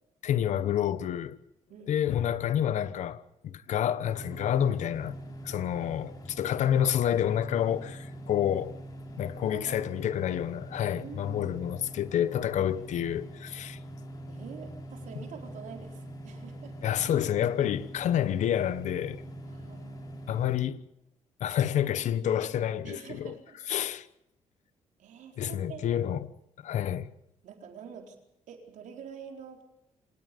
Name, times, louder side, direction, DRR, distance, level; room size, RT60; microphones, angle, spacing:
voice 1, 0.2-1.4 1.9-5.2 5.4-8.8 9.2-13.8 16.8-19.2 20.3-20.8 21.4-23.3 23.7-24.1 25.4-26.3 26.6-27.1, left 10 dB, 70° left, 1.1 m, -28 dB
voice 2, 1.7-2.0 5.8-6.0 9.5-10.0 11.0-11.6 12.7-12.9 14.3-16.8 19.4-20.1 22.8-23.6 25.0-25.9 27.4-28.2 28.5-29.6, right 7 dB, 85° right, 4.2 m, -46 dB
sound 1, 4.0-20.6, right 1 dB, 30° left, 4.1 m, -43 dB
27.0 x 18.5 x 5.3 m
cardioid pair, 175°, 13 cm